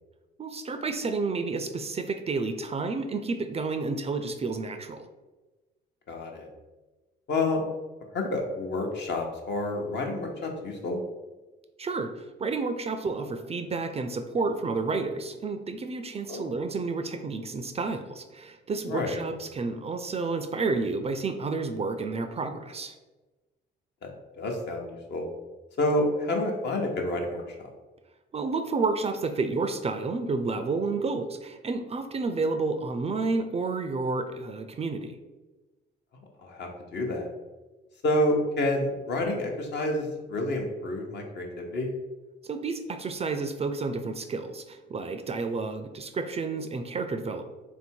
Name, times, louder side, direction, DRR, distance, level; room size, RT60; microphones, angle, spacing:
voice 1, 0.4-5.1 11.8-22.9 28.3-35.2 42.4-47.4, right 3 dB, 30° right, 8 dB, 0.4 m, -30 dB
voice 2, 6.1-6.5 7.3-7.6 8.1-11.0 16.3-16.6 18.9-19.2 24.0-24.1 24.4-25.3 25.8-27.7 36.4-37.3 38.0-41.9, left 1 dB, 60° left, 1 dB, 0.9 m, -29 dB
3.5 x 2.7 x 4.5 m, 1.2 s
cardioid pair, 90°, 20 cm